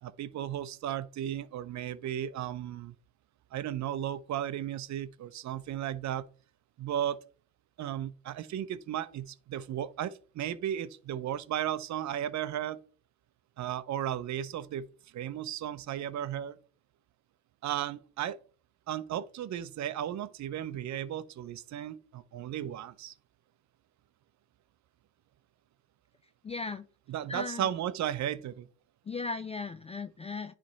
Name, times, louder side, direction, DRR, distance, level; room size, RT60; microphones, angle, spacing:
voice 1, 0.0-2.9 3.5-6.2 6.8-7.2 7.8-12.8 13.6-14.9 15.1-16.6 17.6-18.4 18.9-23.1 27.1-28.7, right 11 dB, 55° right, 0.7 m, -35 dB
voice 2, 26.4-26.8 27.3-27.7 29.1-30.5, left 4 dB, 20° left, 0.4 m, -37 dB
9.9 x 3.4 x 4.0 m
supercardioid pair, 80°, 34 cm